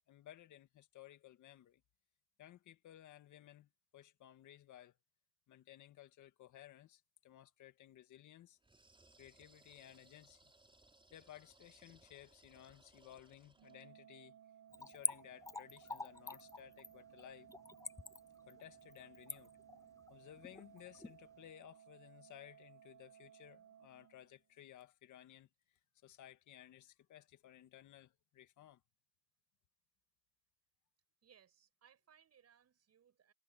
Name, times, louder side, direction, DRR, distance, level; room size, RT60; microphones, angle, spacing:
voice 1, 0.1-1.8 2.4-5.0 5.5-8.6 9.2-10.5 11.1-14.4 14.8-17.5 18.4-19.5 20.1-28.8, left 12 dB, 80° left, 1.9 m, -58 dB
sound 1, 8.6-13.9, right 2 dB, 15° right, 6.1 m, -67 dB
Organ, 13.6-24.6, right 9 dB, 85° right, 1.6 m, -61 dB
Splash splatter / Trickle dribble, 14.7-21.1 21.5-21.6, left 3 dB, 10° left, 0.4 m, -44 dB
voice 2, 31.2-33.3, right 8 dB, 55° right, 6.5 m, -67 dB
cardioid pair, 90°, 30 cm